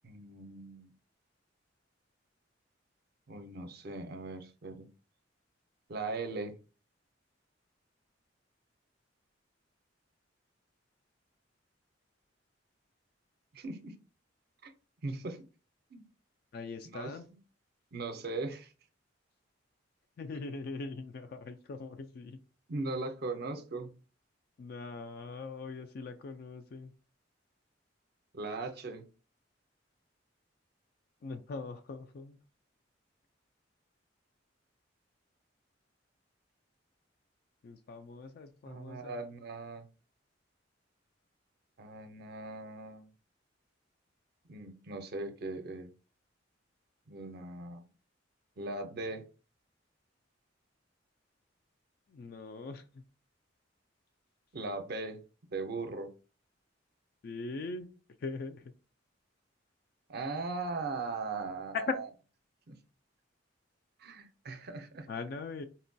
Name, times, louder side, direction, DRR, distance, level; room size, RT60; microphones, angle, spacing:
voice 1, 0.0-0.9 3.3-4.9 5.9-6.6 13.5-14.0 14.6-14.7 15.0-15.4 15.9-16.0 16.9-17.1 17.9-18.7 22.7-23.9 28.3-29.1 38.7-39.9 41.8-43.1 44.5-45.9 47.1-47.8 48.6-49.3 54.5-55.2 55.5-56.1 60.1-62.0 62.7-62.8 64.0-65.1, right 3 dB, 55° right, 0.5 m, -39 dB
voice 2, 16.5-17.2 20.2-22.4 24.6-26.9 31.2-32.4 37.6-39.2 52.1-53.0 57.2-57.9 58.2-58.7 61.9-62.0 65.1-65.6, left 3 dB, 55° left, 0.3 m, -41 dB
4.0 x 2.2 x 2.6 m
head